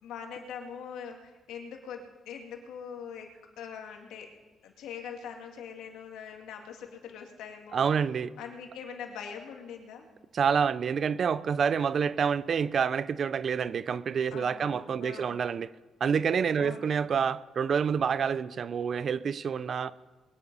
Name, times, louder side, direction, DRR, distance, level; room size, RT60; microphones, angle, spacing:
voice 1, 0.0-3.3 3.6-4.3 4.6-7.8 8.4-10.0 14.3-15.4 16.6-16.9, left 7 dB, 85° left, 2.2 m, -42 dB
voice 2, 7.7-8.3 10.3-15.7 16.0-19.9, right 6 dB, 50° right, 0.6 m, -28 dB
21.0 x 10.0 x 5.4 m
cardioid pair, 90°, 0 cm